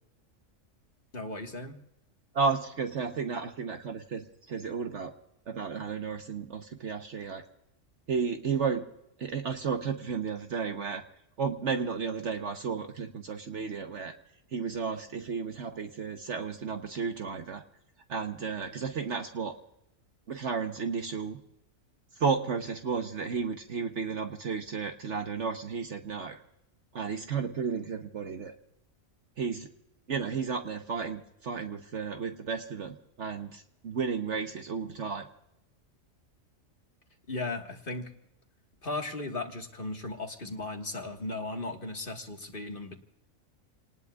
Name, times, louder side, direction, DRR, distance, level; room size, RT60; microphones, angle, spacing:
voice 1, 1.1-1.8 37.3-38.1 38.8-43.0, left 2 dB, 40° left, 3 dB, 1.8 m, -36 dB
voice 2, 2.3-5.1 5.5-7.4 8.1-8.8 9.2-11.0 11.4-14.2 14.5-17.6 18.1-19.6 20.3-21.4 22.2-26.4 26.9-28.5 29.4-29.7 30.1-35.3, right 5 dB, 60° right, 5 dB, 1.3 m, -33 dB
29.0 x 19.5 x 2.4 m, 0.85 s
omnidirectional pair, 1.4 m